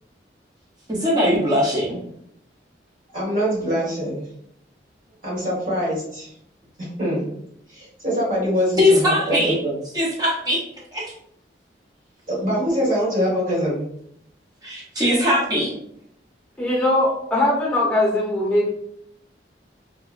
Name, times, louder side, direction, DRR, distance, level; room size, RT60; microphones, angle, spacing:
voice 1, 0.9-2.0 8.8-9.5 9.9-10.6 10.9-11.1 14.6-15.7, left 1 dB, 20° right, -4 dB, 0.7 m, -20 dB
voice 2, 3.1-4.2 5.2-6.3 6.8-7.3 7.7-9.7 12.3-13.8, equal, 45° right, -6 dB, 1.3 m, -24 dB
voice 3, 16.6-18.7, left 1 dB, 5° left, -5 dB, 0.8 m, -20 dB
2.9 x 2.1 x 2.4 m, 0.71 s
head